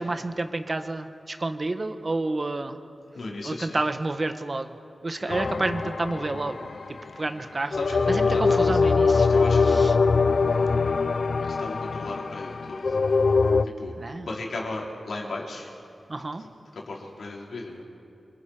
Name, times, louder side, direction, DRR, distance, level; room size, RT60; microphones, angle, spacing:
voice 1, 0.0-2.8 3.4-4.7 5.0-6.7 7.2-7.8 8.1-9.3 9.6-9.9 14.0-14.3 16.1-16.4, right 2 dB, 35° right, 8 dB, 1.3 m, -29 dB
voice 2, 3.1-3.8 5.2-5.8 7.7-9.9 11.5-13.0 13.6-13.9 14.2-15.7 16.4-16.5 16.7-17.9, left 2 dB, 85° left, -3 dB, 4.7 m, -36 dB
sound 1, 5.3-7.0 7.7-13.6, left 4 dB, 60° left, 0.8 m, -23 dB
28.0 x 26.5 x 5.0 m, 2.6 s
wide cardioid pair, 100°, 0 cm